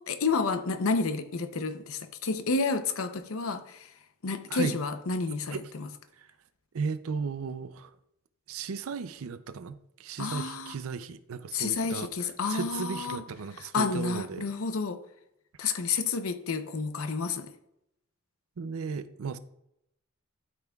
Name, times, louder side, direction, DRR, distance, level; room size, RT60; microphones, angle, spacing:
voice 1, 0.0-3.9 4.2-5.9 10.2-10.8 11.5-13.2 13.6-15.0 15.6-17.5, left 4 dB, 85° left, 0.7 m, -30 dB
voice 2, 6.7-7.9 8.5-12.1 12.5-14.4 18.6-19.4, right 5 dB, 90° right, 0.5 m, -35 dB
12.0 x 5.8 x 2.3 m
head